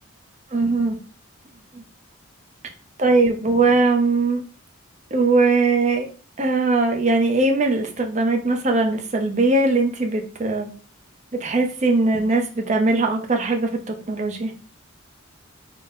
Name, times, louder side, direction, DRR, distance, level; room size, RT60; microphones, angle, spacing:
voice 1, 0.5-1.0 1.7-1.8 3.0-4.4 5.1-6.1 6.4-10.7 11.4-14.5, right 3 dB, 35° right, 3 dB, 0.5 m, -20 dB
3.8 x 2.1 x 3.6 m, 0.38 s
head